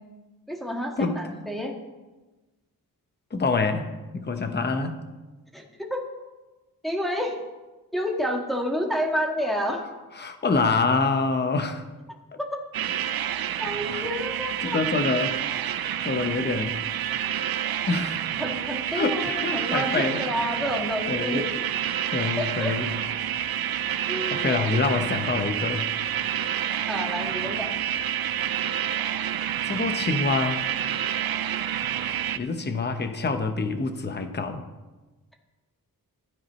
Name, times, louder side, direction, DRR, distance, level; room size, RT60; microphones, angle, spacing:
voice 1, 0.5-1.7 5.5-6.1 6.8-7.4 7.9-9.8 12.4-12.5 13.6-14.8 18.4-21.5 22.4-22.7 23.4-23.5 24.1-24.8 26.9-27.7, equal, ahead, -1 dB, 1.8 m, -29 dB
voice 2, 3.3-3.9 4.1-5.0 10.2-11.8 13.9-14.1 14.6-15.4 16.0-16.8 17.9-18.2 18.9-20.2 21.1-21.4 22.1-22.9 24.3-25.9 29.7-30.6 32.3-34.6, left 3 dB, 30° left, 7 dB, 0.9 m, -26 dB
sound 1, 12.7-32.4, right 10 dB, 70° right, 0.6 m, -28 dB
16.0 x 13.0 x 3.2 m, 1.2 s
wide cardioid pair, 160°, 37 cm